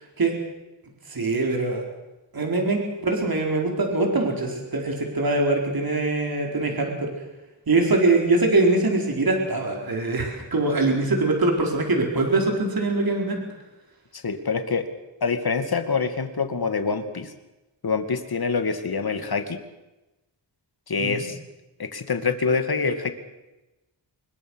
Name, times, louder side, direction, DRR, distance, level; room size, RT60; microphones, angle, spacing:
voice 1, 1.1-1.8 2.3-7.1 7.7-13.4 21.0-21.2, right 2 dB, 50° right, 1 dB, 4.8 m, -23 dB
voice 2, 14.1-14.9 15.2-17.3 17.8-19.6 20.9-21.4 21.8-23.1, left 5 dB, 55° left, 8 dB, 2.5 m, -25 dB
24.5 x 22.0 x 6.5 m, 1.0 s
wide cardioid pair, 110°, 44 cm